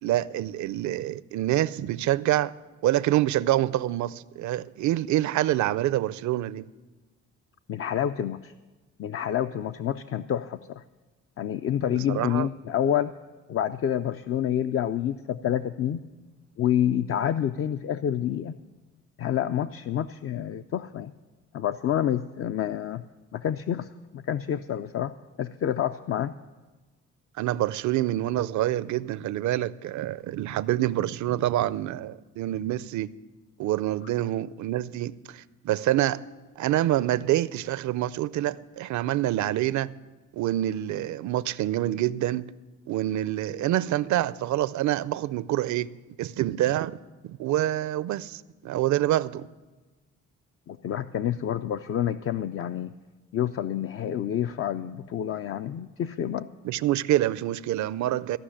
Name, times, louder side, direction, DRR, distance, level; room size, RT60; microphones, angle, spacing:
voice 1, 0.0-2.5 2.8-6.7 11.9-12.5 27.4-33.1 33.6-36.2 36.6-39.9 40.3-42.5 42.9-45.9 46.2-47.0 47.2-49.5 56.6-58.4, right 14 dB, 70° right, 0.5 m, -26 dB
voice 2, 7.7-8.5 9.0-10.8 11.4-13.1 13.5-16.0 16.6-18.5 19.2-21.1 21.5-23.0 23.3-23.9 24.1-26.3 50.7-52.9 53.3-56.5, left 10 dB, 50° left, 0.4 m, -28 dB
15.0 x 5.8 x 9.9 m
cardioid pair, 90°, 30 cm